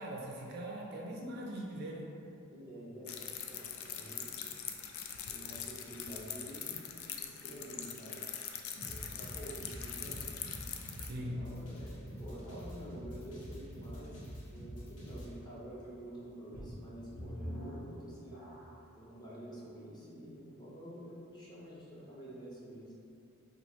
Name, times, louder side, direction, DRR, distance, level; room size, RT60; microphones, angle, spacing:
voice 1, 0.0-2.1 11.0-11.6, equal, 45° right, -1 dB, 0.3 m, -41 dB
voice 2, 2.5-3.2 3.5-4.3 5.1-8.3 8.8-10.4 11.2-18.5 19.0-22.9, right 1 dB, 20° left, -7 dB, 0.6 m, -49 dB
sound 1, 3.1-11.1, left 8 dB, 70° left, 0.3 m, -43 dB
sound 2, 8.8-15.3, equal, 90° left, 0.9 m, -46 dB
sound 3, 16.5-19.0 19.6-19.7 20.3-20.4, equal, 55° left, 1.0 m, -45 dB
3.0 x 2.3 x 4.2 m, 2.6 s
head